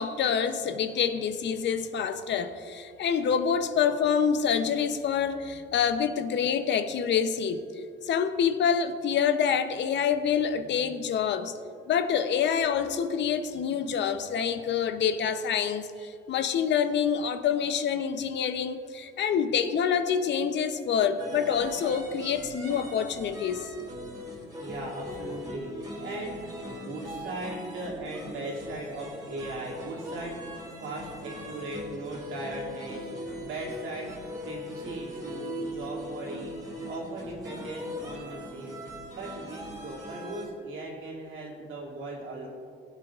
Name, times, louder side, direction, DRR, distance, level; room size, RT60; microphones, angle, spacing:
voice 1, 0.0-7.7 8.0-11.6 11.9-23.7, left 7 dB, 65° left, 10 dB, 0.6 m, -27 dB
sound 1, 21.2-40.5, left 1 dB, 20° right, 2.3 m, -40 dB
voice 2, 24.6-42.5, right 2 dB, 85° right, -4 dB, 2.4 m, -38 dB
16.5 x 8.1 x 2.4 m, 2.3 s
cardioid pair, 90°, 20 cm